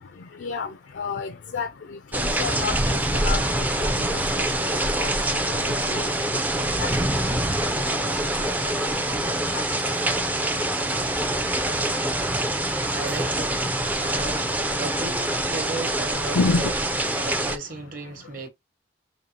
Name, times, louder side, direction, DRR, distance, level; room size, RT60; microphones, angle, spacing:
voice 1, 1.0-1.7 2.1-2.8 3.2-3.4 4.1-4.2 5.0-5.1 5.7-6.0 6.8-6.9 7.2-7.3 16.3-16.7, left 4 dB, 70° left, 0.4 m, -27 dB
sound 1, 2.1-17.6, right 1 dB, 10° right, 0.3 m, -25 dB
voice 2, 12.8-13.6 13.9-16.7 17.2-18.5, right 3 dB, 45° right, 1.0 m, -35 dB
5.2 x 2.7 x 2.8 m
head